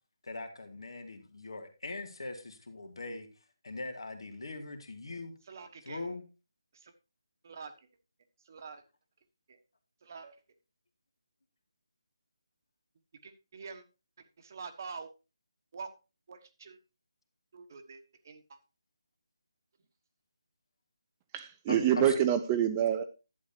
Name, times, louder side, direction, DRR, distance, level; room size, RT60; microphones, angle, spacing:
voice 1, 0.2-3.3 3.6-5.3 5.9-6.2 21.7-22.2, left 2 dB, 70° left, 2.4 m, -41 dB
voice 2, 5.4-6.2 6.7-6.9 7.4-7.9 8.4-8.8 9.5-9.6 10.0-10.4 13.2-13.8 14.2-15.1 15.7-15.9 16.3-16.8 17.5-18.6, right 5 dB, 40° right, 1.2 m, -46 dB
voice 3, 21.3-23.0, right 10 dB, 15° right, 0.5 m, -26 dB
11.0 x 9.0 x 2.8 m
figure-of-eight pair, 165°, 3 cm